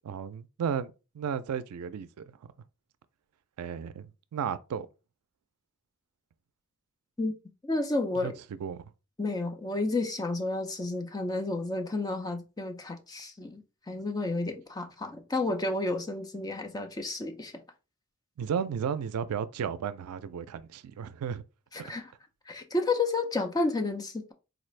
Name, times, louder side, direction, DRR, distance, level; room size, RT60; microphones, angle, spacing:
voice 1, 0.0-2.3 3.6-4.9 8.2-8.3 8.6-8.8 18.4-21.4 21.8-21.9, right 7 dB, 85° right, 0.4 m, -34 dB
voice 2, 7.6-8.4 9.2-17.5 21.7-22.1 22.5-24.3, left 2 dB, 15° left, 0.4 m, -31 dB
3.9 x 2.5 x 3.2 m
head